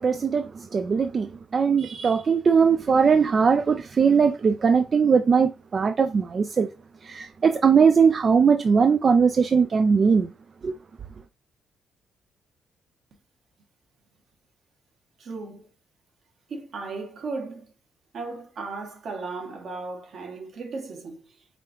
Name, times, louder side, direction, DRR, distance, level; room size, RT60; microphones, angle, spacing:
voice 1, 0.0-6.7 7.0-10.3 10.6-10.8, right 6 dB, 40° right, 0.3 m, -20 dB
voice 2, 15.2-15.7 16.5-17.7 18.1-21.3, right 3 dB, 60° right, 1.4 m, -35 dB
5.0 x 3.4 x 3.0 m
cardioid pair, 90°, 0 cm